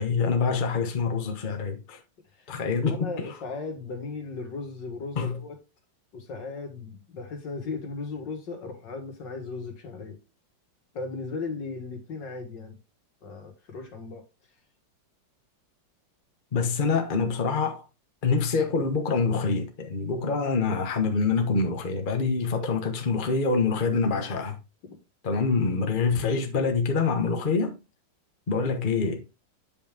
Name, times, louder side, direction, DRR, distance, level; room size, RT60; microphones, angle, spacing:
voice 1, 0.0-2.0 2.5-2.9 5.2-5.3 16.5-17.8 18.2-24.6 25.2-27.8 28.5-29.2, left 4 dB, 30° left, 1.1 m, -25 dB
voice 2, 2.8-5.6 6.1-10.2 10.9-12.8 13.2-14.2 18.7-18.9 22.4-22.8 26.3-26.5, left 4 dB, 70° left, 2.3 m, -37 dB
8.7 x 5.1 x 3.4 m
omnidirectional pair, 2.1 m